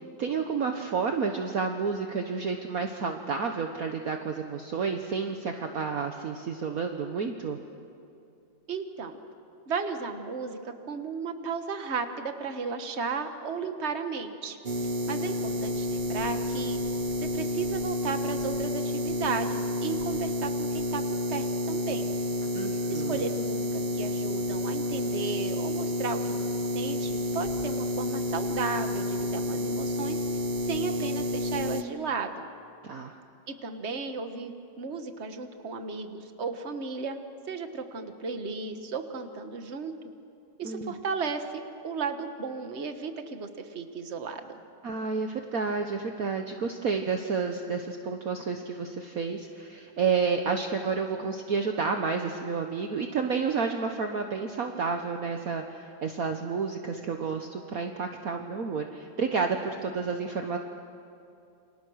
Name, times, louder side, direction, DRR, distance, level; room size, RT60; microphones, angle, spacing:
voice 1, 0.2-7.6 22.5-23.2 32.8-33.2 40.6-40.9 44.8-60.6, right 5 dB, 55° right, 4 dB, 1.5 m, -30 dB
voice 2, 8.7-9.2 9.7-14.6 15.1-16.8 17.2-22.1 22.9-26.5 26.7-30.2 30.7-32.5 33.5-37.2 37.5-39.9 40.6-44.4, right 5 dB, 40° right, 7 dB, 1.6 m, -34 dB
sound 1, 14.6-31.8, left 1 dB, 75° right, 0.4 m, -30 dB
29.0 x 26.0 x 6.4 m, 2.6 s
omnidirectional pair, 2.0 m